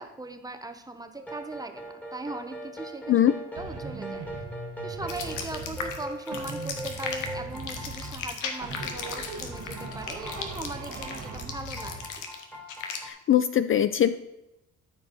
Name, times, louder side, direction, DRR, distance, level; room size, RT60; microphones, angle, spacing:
voice 1, 0.0-3.2 3.6-4.2 4.8-12.2, right 2 dB, 10° right, 7 dB, 1.0 m, -40 dB
sound 1, 1.1-13.1, right 1 dB, 5° left, 2.1 m, -41 dB
sound 2, 3.6-6.0 6.3-8.3 8.6-12.0, right 3 dB, 85° right, 1.9 m, -40 dB
sound 3, 5.1-13.0, left 6 dB, 85° left, 1.3 m, -37 dB
voice 2, 13.0-14.2, left 10 dB, 45° left, 12 dB, 0.4 m, -22 dB
13.5 x 4.8 x 4.1 m, 0.94 s
cardioid pair, 90°, 30 cm